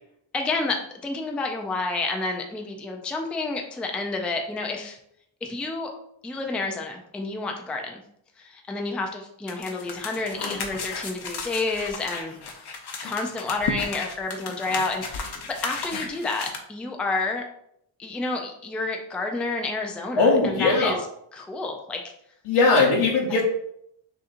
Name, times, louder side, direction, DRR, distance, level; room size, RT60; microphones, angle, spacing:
voice 1, 0.3-0.8 1.0-5.0 5.4-5.9 6.2-8.0 8.4-12.4 13.0-17.5 18.0-21.0 21.3-22.0, left 3 dB, 5° left, 2 dB, 0.4 m, -29 dB
sound 1, 9.5-16.6, left 4 dB, 50° left, 0.8 m, -34 dB
voice 2, 20.2-21.0 22.5-23.4, left 3 dB, 90° left, -4 dB, 0.9 m, -19 dB
6.2 x 2.9 x 2.5 m, 0.73 s
wide cardioid pair, 130°, 50 cm